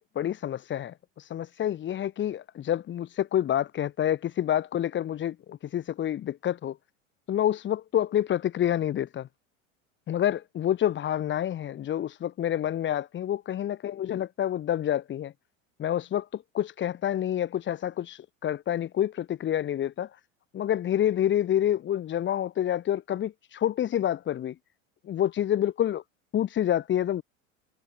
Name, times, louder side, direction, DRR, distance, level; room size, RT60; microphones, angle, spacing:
voice 1, 0.0-6.8 7.3-9.3 10.1-15.3 15.8-20.1 20.5-24.5 25.0-26.0 26.3-27.2, left 11 dB, 30° left, 1.0 m, -28 dB
hypercardioid pair, 95°, 40 cm